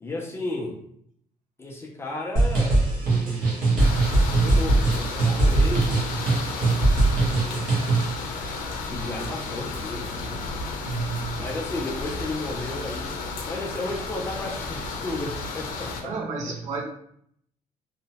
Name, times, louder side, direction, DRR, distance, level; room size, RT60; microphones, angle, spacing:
voice 1, 0.0-0.8 1.6-4.0 4.3-6.1 6.9-7.8 8.8-10.4 11.4-13.2 13.4-16.1 16.5-16.6, left 2 dB, 20° left, 0.4 m, -34 dB
sound 1, 2.4-8.2, right 2 dB, 80° right, 1.0 m, -21 dB
sound 2, 3.8-16.0, left 3 dB, 85° left, 0.5 m, -33 dB
voice 2, 10.8-11.4 16.0-16.8, right 4 dB, 60° right, 0.6 m, -31 dB
2.7 x 2.1 x 2.8 m
cardioid pair, 160°, 14 cm